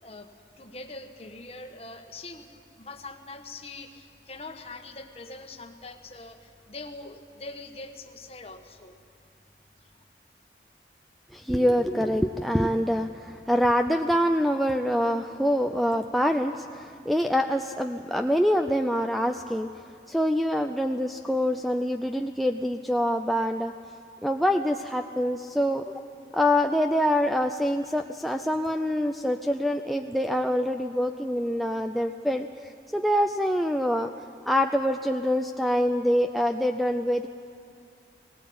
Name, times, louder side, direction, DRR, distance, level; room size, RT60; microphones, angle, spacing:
voice 1, 0.0-9.0 9.8-9.9, left 2 dB, 35° left, 5 dB, 1.3 m, -43 dB
voice 2, 11.3-19.7 20.1-23.7 24.2-25.9 26.3-34.1 34.5-37.3, equal, ahead, 4 dB, 0.4 m, -25 dB
19.0 x 18.5 x 8.6 m, 2.6 s
head